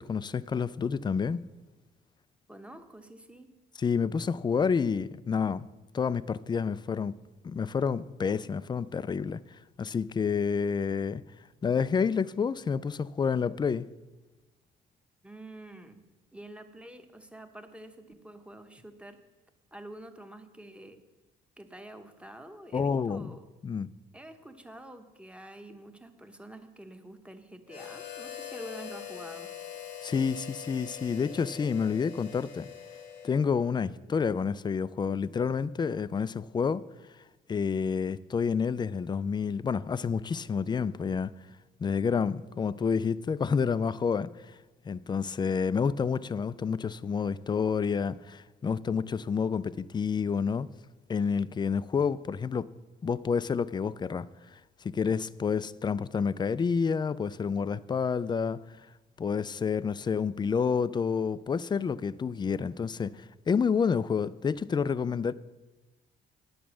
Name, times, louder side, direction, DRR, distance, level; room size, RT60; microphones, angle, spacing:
voice 1, 0.0-1.4 3.8-5.7 5.9-7.2 7.4-9.4 9.8-11.2 11.6-13.9 22.7-23.4 23.6-23.9 30.0-32.7 33.2-36.8 37.5-41.3 41.8-44.3 44.9-50.7 51.1-52.7 53.0-54.3 54.8-58.6 59.2-65.3, left 6 dB, 20° left, 0.3 m, -29 dB
voice 2, 2.5-3.5 15.2-16.0 16.3-19.2 19.7-21.0 21.6-23.5 24.1-29.5, right 1 dB, 5° right, 1.0 m, -47 dB
Harmonica, 27.7-33.7, left 9 dB, 90° left, 1.2 m, -43 dB
10.5 x 7.0 x 6.2 m
cardioid pair, 90°, 20 cm